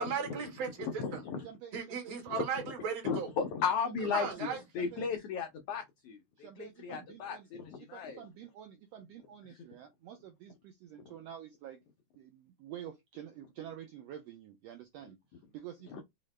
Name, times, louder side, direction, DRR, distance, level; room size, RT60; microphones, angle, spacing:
voice 1, 0.0-1.2 1.7-3.3 4.1-4.6, right 5 dB, 65° right, 2.3 m, -36 dB
voice 2, 0.8-1.5 2.3-2.4 3.0-4.5 4.7-8.2 11.0-11.1 15.9-16.0, left 6 dB, 85° left, 1.3 m, -35 dB
voice 3, 1.4-2.5 4.0-5.1 6.4-7.5 7.8-11.8 12.1-16.0, right 10 dB, 80° right, 1.5 m, -49 dB
4.9 x 2.1 x 3.1 m
omnidirectional pair, 3.4 m